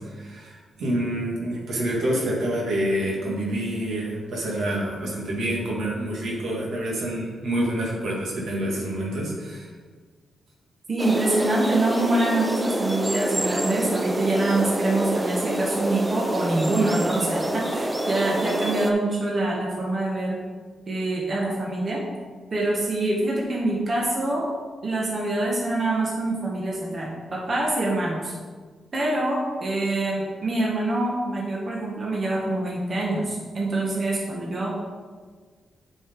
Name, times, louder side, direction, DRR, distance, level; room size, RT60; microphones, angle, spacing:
voice 1, 0.0-9.7, right 1 dB, 80° right, -4 dB, 2.3 m, -27 dB
voice 2, 10.9-20.4 20.9-22.0 22.5-24.5 24.8-28.3 28.9-34.7, right 2 dB, 40° right, -3 dB, 1.7 m, -25 dB
sound 1, 11.0-18.9, right 1 dB, 15° right, 0.6 m, -27 dB
9.4 x 5.3 x 3.9 m, 1.5 s
cardioid pair, 100°, 0 cm